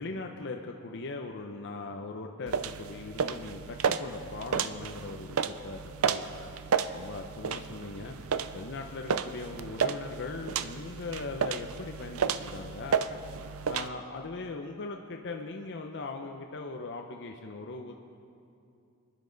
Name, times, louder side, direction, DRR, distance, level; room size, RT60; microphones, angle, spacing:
voice 1, 0.0-6.2 6.9-13.2 13.7-17.9, left 3 dB, 55° left, 3 dB, 0.7 m, -40 dB
sound 1, 2.5-13.9, right 6 dB, 70° right, 0.5 m, -32 dB
25.0 x 10.5 x 4.0 m, 2.6 s
head